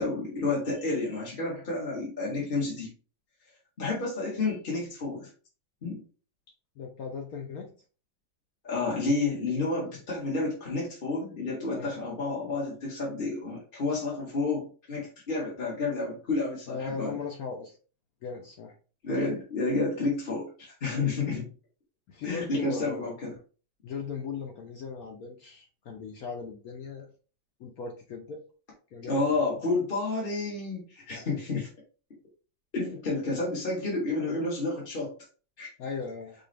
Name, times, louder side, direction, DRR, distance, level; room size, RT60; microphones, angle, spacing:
voice 1, 0.0-2.9 3.8-5.3 5.8-6.0 8.6-17.2 19.0-21.5 22.2-23.3 29.1-31.7 32.7-35.1 35.6-35.7, left 3 dB, 35° left, -4 dB, 1.0 m, -30 dB
voice 2, 6.8-7.7 11.7-11.9 16.7-17.8 18.2-18.7 22.1-23.1 23.8-27.1 27.6-28.4 28.9-29.2 35.8-36.3, left 5 dB, 70° left, 2 dB, 0.8 m, -37 dB
5.0 x 2.4 x 3.1 m, 0.37 s
omnidirectional pair, 2.2 m